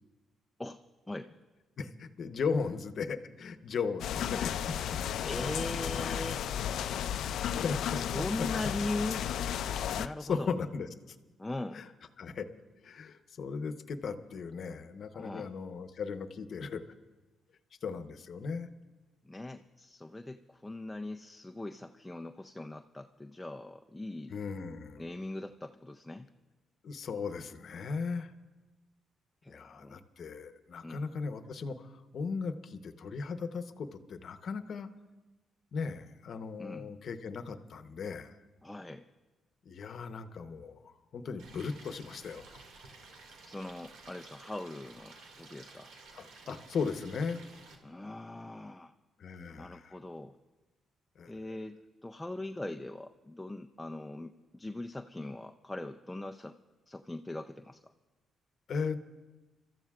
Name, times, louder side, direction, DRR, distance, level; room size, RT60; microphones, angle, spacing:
voice 1, 1.8-5.0 6.0-6.1 7.2-8.0 8.4-8.5 10.0-11.2 11.7-11.9 12.2-12.5 12.8-16.8 17.8-18.7 24.3-25.1 26.8-28.3 29.5-34.9 35.7-38.4 39.6-42.6 46.1-47.4 49.2-50.0 51.2-51.4 58.7-59.0, left 5 dB, 55° left, 10 dB, 0.8 m, -37 dB
sound 1, 4.0-10.1, left 9 dB, 75° left, 0.4 m, -33 dB
voice 2, 5.2-6.4 8.1-9.3 9.9-10.5 11.4-11.8 15.1-15.5 19.2-24.4 25.0-26.3 29.4-30.0 30.8-31.0 36.6-36.9 38.6-39.1 43.5-45.9 47.8-48.9 49.5-50.3 51.3-56.6 56.9-57.9, left 2 dB, 10° left, 5 dB, 0.5 m, -40 dB
Stream, 41.4-47.7, right 3 dB, 85° right, 2.1 m, -53 dB
30.0 x 13.5 x 2.4 m, 1.2 s
cardioid pair, 90°, 0 cm